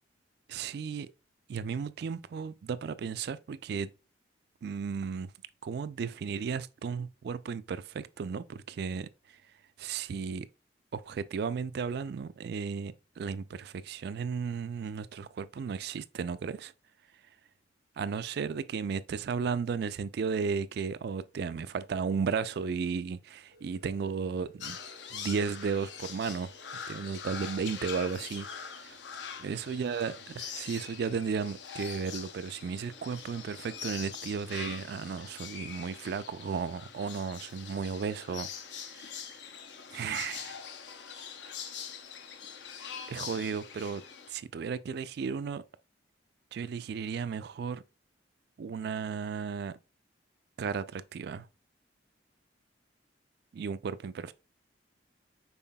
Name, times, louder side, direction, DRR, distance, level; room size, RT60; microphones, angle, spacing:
voice 1, 0.5-1.1 1.5-3.9 4.6-5.3 5.6-9.1 9.8-10.5 10.9-16.7 18.0-24.8 25.1-26.5 26.9-29.0 29.4-38.5 38.9-39.2 39.9-40.6 43.1-44.0 44.3-45.6 46.5-47.8 48.6-49.8 50.6-51.5 53.5-54.3, right 6 dB, 60° right, 0.3 m, -34 dB
sound 1, 23.5-28.7, right 2 dB, 55° left, 1.1 m, -60 dB
sound 2, 24.6-44.3, left 7 dB, 75° left, 0.7 m, -43 dB
5.5 x 4.2 x 2.2 m
head